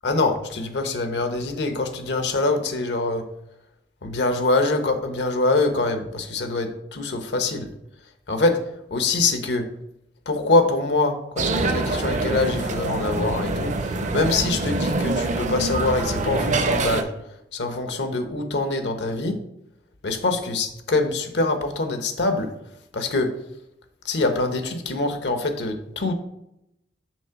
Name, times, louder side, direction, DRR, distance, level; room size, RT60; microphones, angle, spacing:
voice 1, 0.0-3.2 4.0-7.7 8.3-8.6 8.9-9.7 10.3-17.1 17.5-19.4 20.0-22.5 22.9-23.3 24.0-26.1, left 2 dB, 75° left, 7 dB, 0.9 m, -24 dB
sound 1, 11.4-17.0, right 2 dB, 45° right, 0.6 m, -25 dB
6.1 x 3.7 x 5.7 m, 0.82 s
head